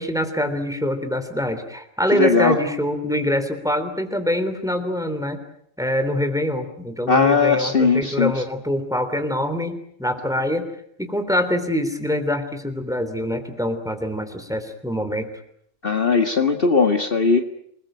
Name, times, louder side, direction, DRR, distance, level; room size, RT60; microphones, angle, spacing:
voice 1, 0.0-5.4 5.8-10.7 11.0-15.3, left 1 dB, 5° right, 8 dB, 3.4 m, -24 dB
voice 2, 2.1-2.6 7.1-8.3 15.8-17.4, left 4 dB, 45° left, 5 dB, 1.9 m, -18 dB
27.5 x 20.5 x 9.0 m, 0.69 s
omnidirectional pair, 1.3 m